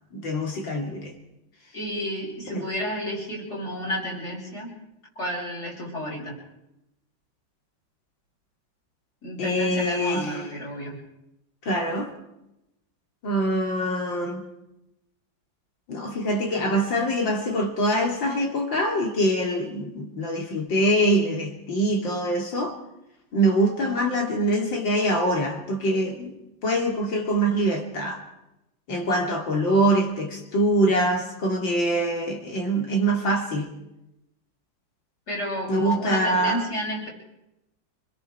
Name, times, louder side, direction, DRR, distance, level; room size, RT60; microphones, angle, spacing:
voice 1, 0.1-1.1 2.5-2.7 9.4-10.4 11.6-12.1 13.2-14.5 15.9-22.8 23.3-26.3 26.6-28.2 28.9-33.7 35.7-36.6, right 1 dB, 70° left, 3.8 m, -24 dB
voice 2, 1.7-4.7 5.2-6.4 9.2-11.0 35.3-37.1, equal, 50° left, 7.3 m, -31 dB
26.5 x 21.5 x 4.6 m
omnidirectional pair, 2.1 m